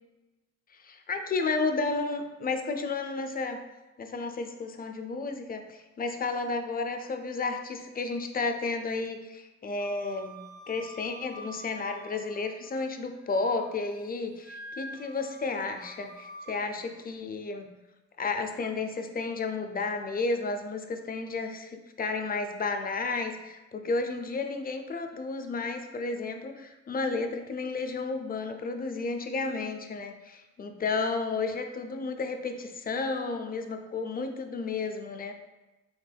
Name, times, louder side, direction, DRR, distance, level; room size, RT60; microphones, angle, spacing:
voice 1, 0.8-3.6 4.0-10.4 10.7-17.7 18.2-35.3, left 3 dB, 30° left, 6 dB, 0.4 m, -32 dB
Wind instrument woodwind instrument, 9.8-12.8 13.2-13.9 14.4-16.6, right 1 dB, 35° right, 0.5 m, -47 dB
3.3 x 2.9 x 2.2 m, 1.1 s
cardioid pair, 60°, 29 cm